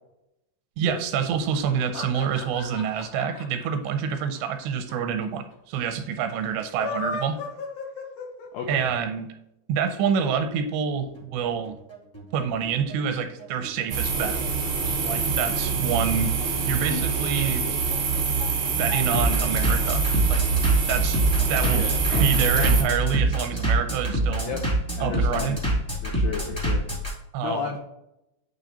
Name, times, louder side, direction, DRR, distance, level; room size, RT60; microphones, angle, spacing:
voice 1, 0.8-7.4 8.7-9.3 9.7-11.8 12.3-14.4 15.0-16.3 16.6-17.6 18.8-20.4 20.9-21.8 22.2-24.5 25.0-25.6 27.3-27.7, right 7 dB, 85° right, 7 dB, 2.8 m, -27 dB
sound 1, 1.6-4.9 5.2-5.3 5.5-5.6 6.6-8.7, left 4 dB, 70° left, 1.9 m, -35 dB
voice 2, 8.5-8.9 21.6-22.0 22.5-22.7 24.4-24.6 25.0-25.6 26.0-26.8 27.4-27.8, left 6 dB, 85° left, 1 dB, 2.0 m, -32 dB
Bass drum, 11.1-27.1, right 1 dB, 20° left, 0.7 m, -26 dB
sound 2, 13.9-22.8, right 5 dB, 70° right, 1.3 m, -25 dB
9.0 x 3.2 x 4.1 m, 0.85 s
omnidirectional pair, 5.0 m